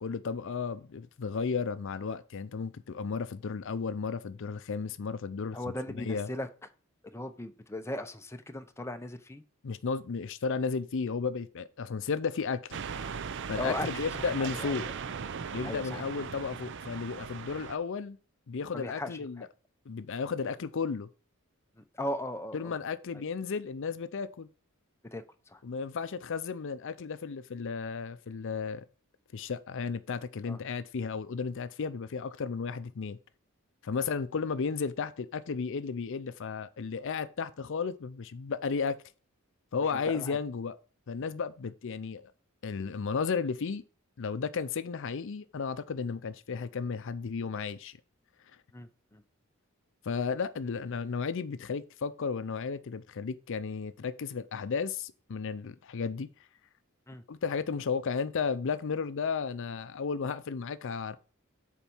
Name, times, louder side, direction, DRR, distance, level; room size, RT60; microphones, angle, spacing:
voice 1, 0.0-5.6 6.1-6.3 9.6-12.8 13.5-14.9 15.5-18.2 18.5-19.5 19.9-21.1 22.5-24.5 25.6-28.9 29.3-33.2 33.8-39.0 39.7-40.8 41.1-42.3 42.6-43.8 44.2-48.0 50.0-56.3 57.3-61.2, left 5 dB, 60° left, 0.5 m, -34 dB
voice 2, 5.5-6.5 7.0-9.4 13.6-13.9 14.2-15.0 15.6-16.1 18.7-19.5 21.8-22.8 23.1-23.2 25.1-25.6 30.4-30.6 33.9-34.0 39.8-40.4 48.7-49.2 57.1-57.2, left 1 dB, 10° left, 0.7 m, -38 dB
sound 1, 12.7-17.8, right 6 dB, 60° right, 0.5 m, -38 dB
7.2 x 4.5 x 5.4 m
head